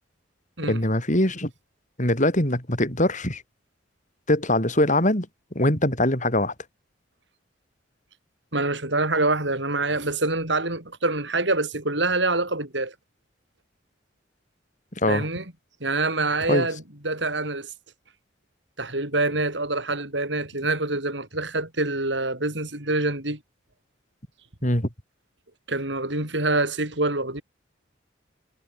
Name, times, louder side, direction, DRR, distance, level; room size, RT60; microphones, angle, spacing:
voice 1, 0.6-1.5 2.0-3.4 4.3-5.3 5.5-6.5 15.0-15.3 16.5-16.7 24.6-24.9, left 1 dB, 40° left, 7.8 m, -22 dB
voice 2, 8.5-12.9 15.1-15.4 15.8-17.7 18.8-23.4 25.7-27.4, right 2 dB, 65° right, 6.3 m, -25 dB
head